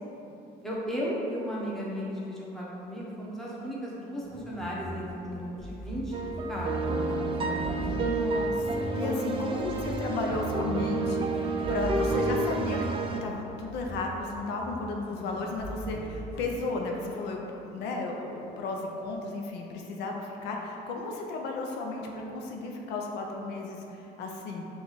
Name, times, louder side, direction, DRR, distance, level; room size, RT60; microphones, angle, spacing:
voice 1, 0.6-6.2 6.5-8.0 9.0-9.2 11.6-11.8 18.4-18.5, equal, ahead, -6 dB, 0.9 m, -35 dB
sound 1, 4.2-16.6, equal, 40° left, 1.1 m, -40 dB
sound 2, 6.1-13.2, right 3 dB, 30° right, 0.4 m, -30 dB
voice 2, 7.7-13.0 13.2-24.6, left 3 dB, 85° left, 0 dB, 0.5 m, -34 dB
4.8 x 2.4 x 3.9 m, 2.9 s
cardioid pair, 110°, 17 cm